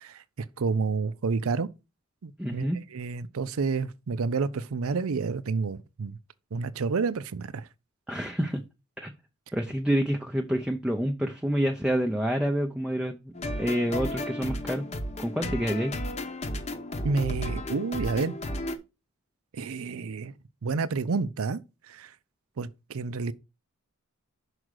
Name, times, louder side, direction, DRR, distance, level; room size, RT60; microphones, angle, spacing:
voice 1, 0.0-1.7 2.2-6.2 6.5-7.7 17.0-18.4 19.5-20.3 20.6-21.6 21.9-22.1 22.6-23.3, right 4 dB, 70° right, 0.5 m, -29 dB
voice 2, 2.4-2.8 8.1-8.6 9.0-9.1 9.5-14.8 15.2-15.9, equal, 5° right, 0.6 m, -28 dB
sound 1, 13.3-18.8, left 1 dB, 30° left, 0.9 m, -33 dB
6.2 x 4.8 x 6.4 m
head